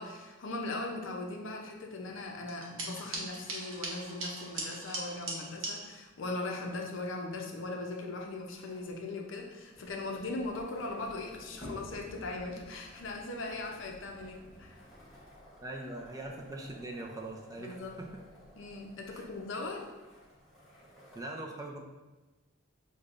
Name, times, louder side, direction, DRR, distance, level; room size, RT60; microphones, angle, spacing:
voice 1, 0.0-14.8 17.6-18.0 18.6-19.9, left 2 dB, 70° left, 1 dB, 0.5 m, -39 dB
sound 1, 2.5-5.7, right 2 dB, 85° right, 0.8 m, -39 dB
sound 2, 8.5-21.2, equal, ahead, 0.9 m, -58 dB
sound 3, 9.7-15.2, equal, 40° left, 1.2 m, -51 dB
voice 2, 15.6-18.1 19.1-19.3 21.1-21.8, right 2 dB, 15° right, 1 dB, 0.3 m, -42 dB
6.3 x 2.2 x 2.4 m, 1.2 s
head